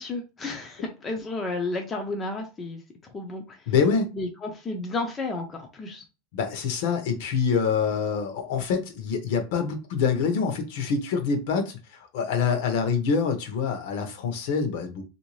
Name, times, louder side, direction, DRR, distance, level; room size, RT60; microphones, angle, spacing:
voice 1, 0.0-2.8 3.1-3.6 4.1-6.0, left 2 dB, 15° left, 0.4 m, -32 dB
voice 2, 3.7-4.1 6.3-15.0, left 6 dB, 60° left, 0.8 m, -26 dB
3.2 x 2.6 x 3.1 m
supercardioid pair, 170°, 0 cm